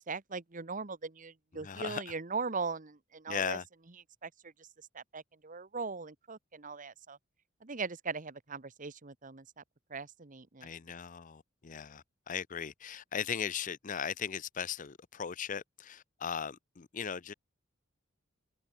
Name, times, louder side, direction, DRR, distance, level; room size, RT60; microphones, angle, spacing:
voice 1, 0.0-3.6 4.2-7.2 7.6-9.6 9.9-10.7, right 4 dB, 40° right, 1.2 m, -40 dB
voice 2, 1.6-2.0 3.3-3.6 10.6-17.3, left 7 dB, 40° left, 0.6 m, -38 dB
head